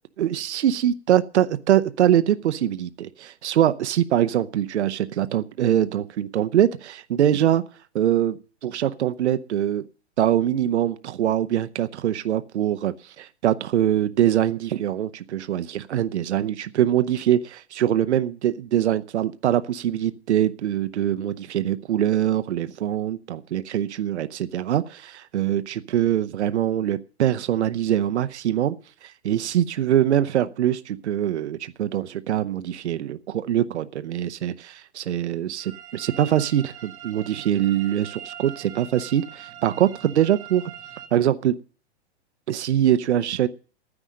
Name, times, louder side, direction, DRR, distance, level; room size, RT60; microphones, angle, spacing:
voice 1, 0.2-7.6 7.9-9.8 10.2-28.8 29.0-40.6 41.1-41.6 42.5-43.5, right 11 dB, 85° right, 12 dB, 0.8 m, -23 dB
sound 1, 35.6-41.1, right 10 dB, 10° right, 0.5 m, -42 dB
11.5 x 9.8 x 6.3 m, 0.40 s
hypercardioid pair, 170°, 33 cm